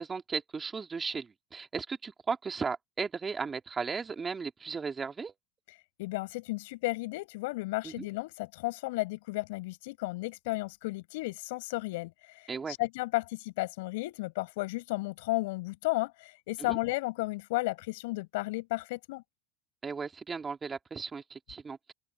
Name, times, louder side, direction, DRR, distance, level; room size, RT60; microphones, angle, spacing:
voice 1, 0.0-5.3 7.8-8.1 12.5-12.8 16.6-16.8 19.8-21.9, right 5 dB, 15° right, 2.1 m, -36 dB
voice 2, 6.0-19.2, left 22 dB, 75° left, 6.6 m, -33 dB
open air
supercardioid pair, 140°, 0 cm